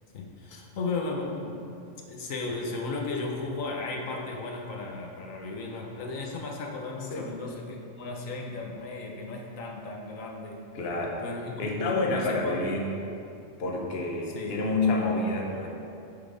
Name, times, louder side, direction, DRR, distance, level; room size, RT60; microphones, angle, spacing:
voice 1, 0.1-1.7 2.1-10.6 11.2-12.6 14.4-14.6, left 3 dB, 85° left, 0 dB, 1.2 m, -35 dB
voice 2, 10.7-11.2 11.6-12.9 13.6-15.7, left 2 dB, 55° left, -1 dB, 1.2 m, -28 dB
10.0 x 3.9 x 5.0 m, 2.5 s
omnidirectional pair, 1.3 m